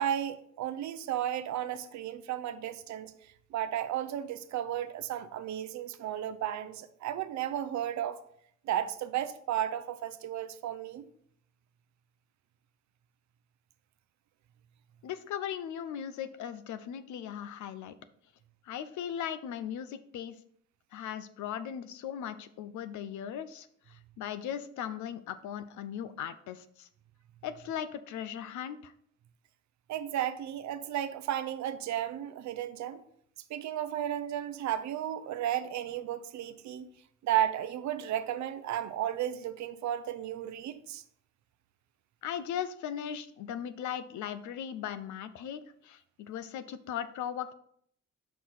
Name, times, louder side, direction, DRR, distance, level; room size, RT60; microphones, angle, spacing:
voice 1, 0.0-8.2 8.6-11.1 29.9-33.0 33.5-36.9 37.2-41.0, right 11 dB, 70° right, 0.6 m, -34 dB
voice 2, 15.0-18.0 18.6-20.4 20.9-26.9 27.4-28.9 42.2-47.5, left 9 dB, 75° left, 0.6 m, -38 dB
5.9 x 4.7 x 4.0 m
cardioid pair, 90°, 30 cm